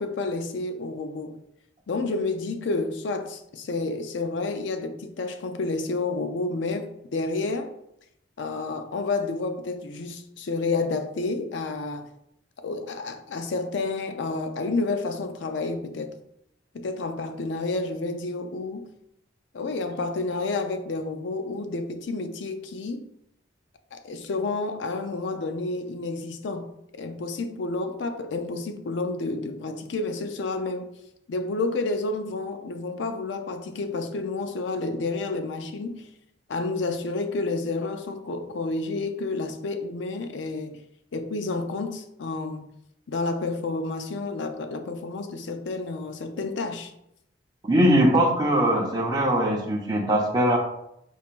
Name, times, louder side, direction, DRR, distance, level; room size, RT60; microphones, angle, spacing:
voice 1, 0.0-1.4 1.9-7.7 8.4-12.1 12.6-16.2 16.7-18.9 19.5-23.0 23.9-26.7 27.0-30.9 31.3-36.1 36.5-40.8 41.1-42.7 43.1-46.9, left 3 dB, 80° left, 0.5 m, -30 dB
voice 2, 47.6-50.6, right 1 dB, 20° right, 0.7 m, -21 dB
4.4 x 3.6 x 2.4 m
head